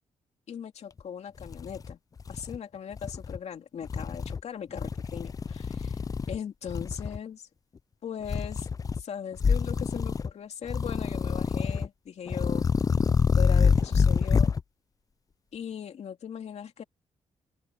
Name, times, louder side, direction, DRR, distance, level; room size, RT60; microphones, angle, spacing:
voice 1, 0.5-2.0 2.3-6.0 6.3-7.5 8.0-8.7 9.0-12.7 13.3-14.5 15.5-16.8, left 8 dB, 65° left, 2.8 m, -39 dB
sound 1, 1.0-1.1 1.4-2.6 2.9-3.4 3.8-4.4 4.8-6.4 6.7-7.2 8.2-9.0 9.4-10.3 10.7-11.9 12.3-14.6, left 5 dB, 30° left, 0.4 m, -26 dB
open air
cardioid pair, 90°, 12 cm